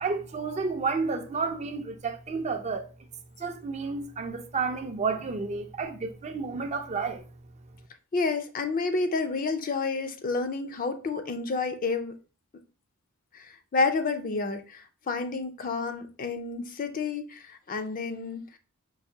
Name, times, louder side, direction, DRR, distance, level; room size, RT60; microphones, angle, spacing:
voice 1, 0.0-2.8 3.4-7.2, right 4 dB, 30° right, 0.4 m, -31 dB
voice 2, 8.1-12.2 13.3-18.5, left 4 dB, 40° left, 0.4 m, -30 dB
4.6 x 2.5 x 2.7 m
head